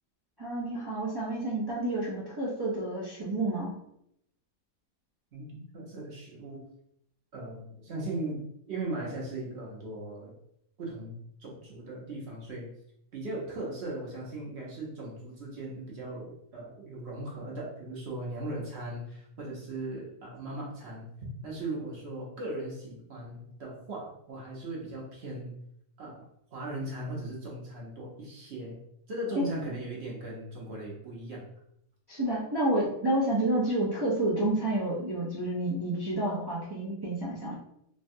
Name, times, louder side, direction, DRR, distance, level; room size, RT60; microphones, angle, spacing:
voice 1, 0.4-3.8 29.4-29.5 32.1-37.6, right 1 dB, 35° right, -7 dB, 0.3 m, -29 dB
voice 2, 5.3-6.6 7.3-10.3 10.8-12.7 13.1-21.1 21.4-25.5 26.0-26.3 26.5-28.8 29.1-31.5, right 1 dB, 55° right, -3 dB, 1.0 m, -38 dB
3.3 x 2.2 x 2.6 m, 0.74 s
omnidirectional pair, 1.5 m